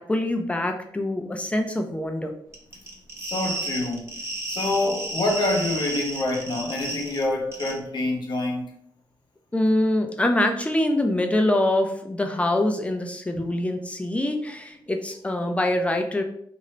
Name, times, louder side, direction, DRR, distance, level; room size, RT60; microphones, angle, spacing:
voice 1, 0.0-2.3 9.5-16.2, left 1 dB, 15° left, 4 dB, 0.5 m, -24 dB
sound 1, 2.5-7.2 7.5-7.7, right 2 dB, 30° right, 0.8 m, -32 dB
voice 2, 3.2-4.0 4.5-8.6 13.3-13.5, left 2 dB, 65° left, 1 dB, 0.8 m, -26 dB
2.7 x 2.5 x 3.1 m, 0.69 s
cardioid pair, 80°, 8 cm